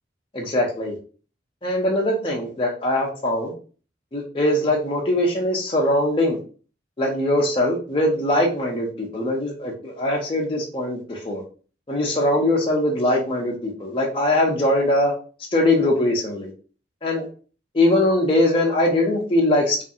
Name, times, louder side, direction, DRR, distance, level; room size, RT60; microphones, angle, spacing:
voice 1, 0.3-1.0 1.6-3.5 4.1-6.4 7.0-11.4 11.9-15.1 15.5-16.5 17.0-17.2 17.7-19.8, left 1 dB, 30° left, -2 dB, 0.5 m, -21 dB
2.6 x 2.4 x 2.6 m, 0.38 s
head